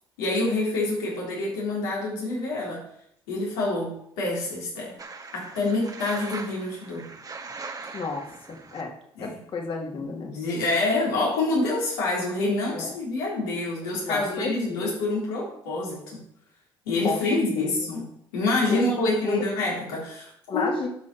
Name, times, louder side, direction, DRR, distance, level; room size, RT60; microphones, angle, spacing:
voice 1, 0.2-2.8 3.3-4.9 5.3-7.1 9.2-9.4 10.0-16.2 16.9-20.7, left 2 dB, 90° left, -5 dB, 3.8 m, -27 dB
sound 1, 5.0-8.8, right 4 dB, 30° right, 1.3 m, -40 dB
voice 2, 7.9-8.2 8.7-8.9 9.2-10.3 12.7-12.9 14.0-14.9 17.0-17.7 18.7-19.4 20.5-20.9, left 4 dB, 50° left, 1 dB, 2.4 m, -31 dB
11.5 x 5.5 x 4.3 m, 0.73 s
hypercardioid pair, 65°, 12 cm